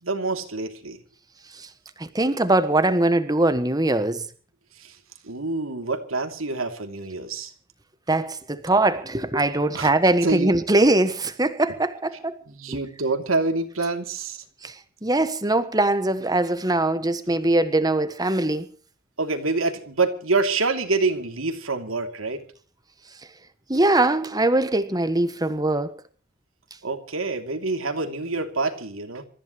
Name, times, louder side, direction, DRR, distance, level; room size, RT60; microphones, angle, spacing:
voice 1, 0.0-1.0 4.8-5.0 5.2-7.5 9.7-9.9 10.2-10.5 12.5-14.4 19.2-22.4 26.8-29.3, right 3 dB, 90° right, 2.9 m, -26 dB
voice 2, 2.0-4.3 8.1-12.4 12.7-12.8 14.6-14.8 15.0-18.7 23.7-25.9, right 2 dB, 20° right, 1.4 m, -22 dB
27.0 x 14.5 x 3.1 m
head